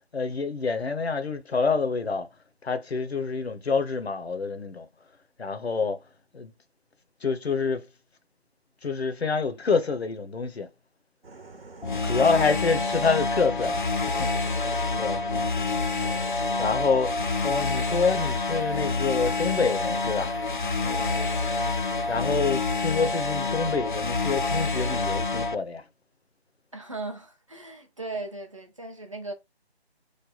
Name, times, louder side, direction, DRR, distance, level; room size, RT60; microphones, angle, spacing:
voice 1, 0.0-2.3 2.6-4.9 5.4-6.0 6.3-6.5 7.2-7.9 8.8-10.7 12.0-13.9 14.2-14.3 15.0-15.2 16.6-20.4 22.1-25.8, left 4 dB, 70° left, 0.8 m, -27 dB
sound 1, 11.2-22.4, right 3 dB, 65° right, 1.0 m, -47 dB
sound 2, 11.8-25.5, left 3 dB, 50° left, 0.4 m, -27 dB
voice 2, 12.0-12.7 20.8-21.5 26.7-29.3, right 2 dB, 30° right, 0.6 m, -38 dB
3.3 x 2.1 x 3.8 m
figure-of-eight pair, 160°, 32 cm